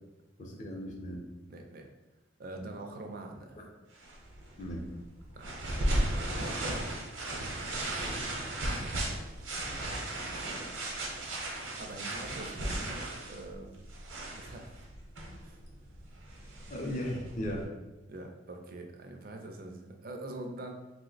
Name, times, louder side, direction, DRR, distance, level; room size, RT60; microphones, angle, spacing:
voice 1, 0.4-1.2 4.6-4.9 16.7-17.6, equal, 40° left, 0 dB, 0.5 m, -36 dB
voice 2, 1.5-1.9 2.4-3.6 5.3-5.5 6.1-6.9 8.7-9.0 9.3-9.5 11.8-13.8 14.3-14.8 15.4-15.6 18.1-20.7, right 2 dB, 45° right, 3 dB, 0.4 m, -44 dB
sound 1, 4.0-17.6, right 1 dB, 80° right, 0.7 m, -36 dB
2.9 x 2.0 x 3.9 m, 1.1 s
head